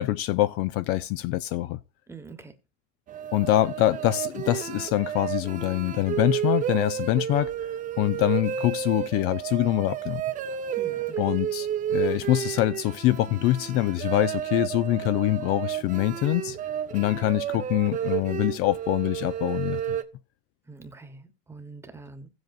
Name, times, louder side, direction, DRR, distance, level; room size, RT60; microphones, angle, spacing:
voice 1, 0.0-1.8 3.3-7.5 8.0-10.2 11.2-16.6 16.9-20.0, left 15 dB, 45° left, 0.5 m, -25 dB
voice 2, 2.1-2.5 10.7-11.1 20.7-22.3, right 3 dB, 10° right, 1.0 m, -44 dB
sound 1, 3.1-20.0, right 9 dB, 25° right, 0.7 m, -31 dB
16.0 x 7.9 x 2.4 m
cardioid pair, 165°, 31 cm